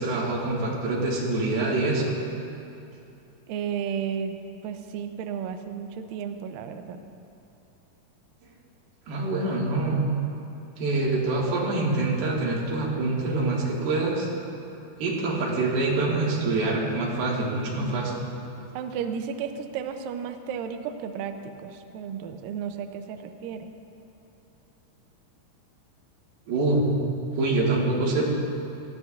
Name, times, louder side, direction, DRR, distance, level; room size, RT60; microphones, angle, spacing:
voice 1, 0.0-2.1 9.1-10.1 10.8-14.3 15.0-18.2 26.5-27.0 27.3-28.2, right 2 dB, 70° right, -4 dB, 3.5 m, -25 dB
voice 2, 3.5-7.0 18.8-23.7, right 7 dB, 90° right, 7 dB, 1.9 m, -33 dB
18.5 x 14.5 x 2.4 m, 2.8 s
omnidirectional pair, 4.8 m